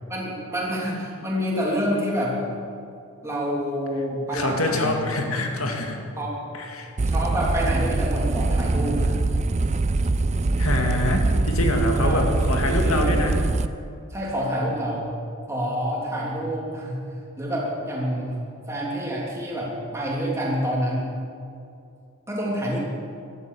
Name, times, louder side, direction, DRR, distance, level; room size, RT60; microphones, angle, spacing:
voice 1, 0.1-2.4 3.2-5.4 6.2-6.3 7.1-9.2 12.0-12.3 12.6-13.1 14.1-15.1 15.5-17.0 17.4-18.4 18.7-21.1 22.3-22.8, equal, 10° right, -4 dB, 3.1 m, -27 dB
voice 2, 4.3-6.0 6.5-6.9 10.6-13.3, left 1 dB, 70° left, 3 dB, 2.1 m, -25 dB
sound 1, 7.0-13.7, right 2 dB, 30° right, 0.4 m, -23 dB
15.0 x 12.5 x 6.9 m, 2.5 s
head